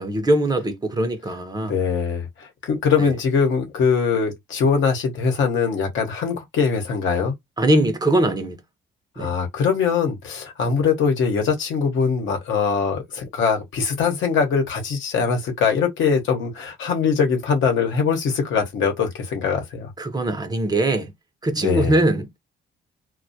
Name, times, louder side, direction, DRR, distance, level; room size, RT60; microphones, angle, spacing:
voice 1, 0.0-1.7 3.0-3.1 7.6-8.6 9.2-9.3 20.0-21.1 21.4-22.3, right 1 dB, 20° right, 0.5 m, -21 dB
voice 2, 1.6-7.3 9.2-19.9 21.6-22.0, left 6 dB, 80° left, 0.8 m, -22 dB
2.2 x 2.1 x 2.6 m
cardioid pair, 90°, 20 cm